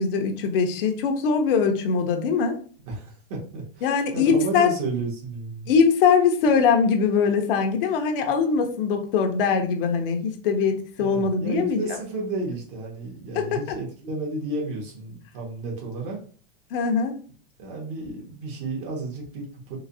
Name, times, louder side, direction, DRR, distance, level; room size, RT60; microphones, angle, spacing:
voice 1, 0.0-2.6 3.8-4.7 5.7-11.8 13.4-13.5 16.7-17.1, left 5 dB, 65° left, 6 dB, 0.8 m, -22 dB
voice 2, 2.8-5.7 11.0-16.2 17.6-19.8, right 2 dB, 60° right, -1 dB, 1.6 m, -32 dB
3.9 x 2.8 x 2.7 m, 0.43 s
supercardioid pair, 135°, 30 cm